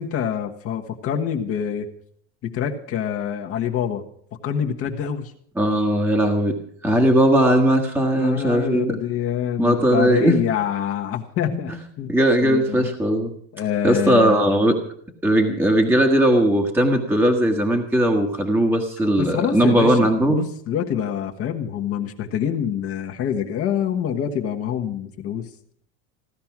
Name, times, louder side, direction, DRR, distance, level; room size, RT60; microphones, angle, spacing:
voice 1, 0.0-1.9 2.4-4.0 4.4-5.3 8.2-12.1 12.4-12.9 13.5-14.4 19.2-25.5, left 9 dB, 40° left, 3 dB, 1.4 m, -26 dB
voice 2, 5.5-6.6 6.8-8.9 9.6-10.3 11.5-11.8 12.1-13.3 13.8-14.7 15.2-20.4, right 1 dB, 5° right, 3 dB, 1.5 m, -18 dB
16.5 x 12.5 x 6.0 m, 0.63 s
cardioid pair, 155°, 34 cm